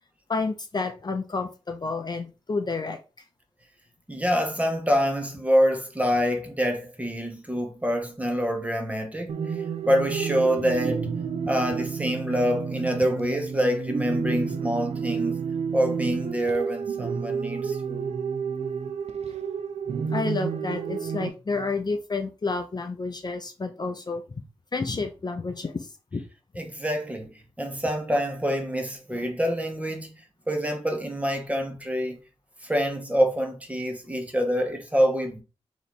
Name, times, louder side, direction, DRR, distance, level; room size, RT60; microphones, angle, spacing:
voice 1, 0.3-3.2 20.1-24.2 24.7-26.3, left 3 dB, 40° left, 0.5 m, -30 dB
voice 2, 4.1-9.5 9.8-11.1 11.5-15.5 15.7-18.1 26.6-27.3 27.6-30.2 30.5-32.2 32.6-35.4, equal, 15° right, 0.9 m, -26 dB
sound 1, 9.3-21.3, right 6 dB, 75° right, 0.4 m, -30 dB
3.3 x 2.9 x 4.1 m
wide cardioid pair, 115°, 11 cm